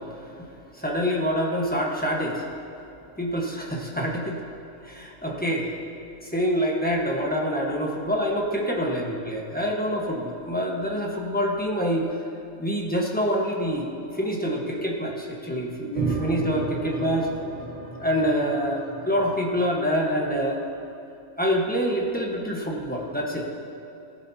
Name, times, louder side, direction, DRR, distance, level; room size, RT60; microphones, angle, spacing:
voice 1, 0.1-0.5 0.7-2.4 3.2-4.4 4.8-5.7 6.2-12.0 12.6-13.9 14.1-17.3 18.0-20.6 21.4-23.4, equal, 5° left, -2 dB, 1.3 m, -26 dB
sound 1, 16.0-20.6, right 3 dB, 40° right, 1.4 m, -34 dB
18.0 x 11.0 x 2.9 m, 2.8 s
omnidirectional pair, 1.3 m